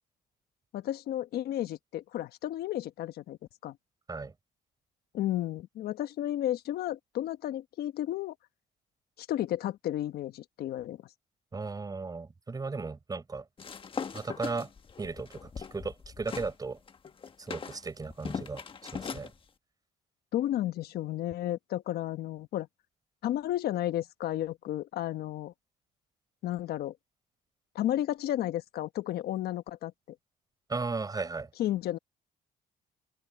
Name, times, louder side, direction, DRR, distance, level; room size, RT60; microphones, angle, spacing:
voice 1, 0.7-3.4 3.6-3.8 5.1-8.3 9.2-11.0 20.3-22.7 23.2-25.5 26.4-27.0 27.7-29.9 31.6-32.0, left 13 dB, 70° left, 1.2 m, -32 dB
voice 2, 11.5-13.4 14.1-14.7 15.0-16.8 17.4-18.6 18.9-19.3 30.7-31.5, right 4 dB, 20° right, 6.2 m, -36 dB
sound 1, 13.6-16.5 16.9-19.3, left 6 dB, 30° left, 1.4 m, -40 dB
open air
cardioid pair, 110°, 17 cm